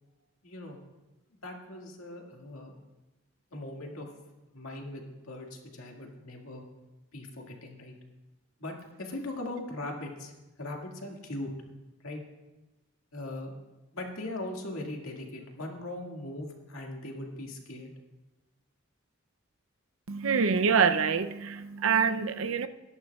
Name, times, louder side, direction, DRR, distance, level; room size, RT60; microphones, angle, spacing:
voice 1, 0.4-0.8 1.3-2.7 3.5-4.1 4.5-6.6 7.1-7.9 8.6-10.3 10.6-11.5 12.0-12.2 13.1-13.5 13.9-17.9, left 1 dB, 80° left, 1 dB, 2.0 m, -40 dB
voice 2, 20.1-22.7, right 6 dB, 70° right, 10 dB, 0.6 m, -25 dB
20.5 x 11.0 x 2.4 m, 1.1 s
head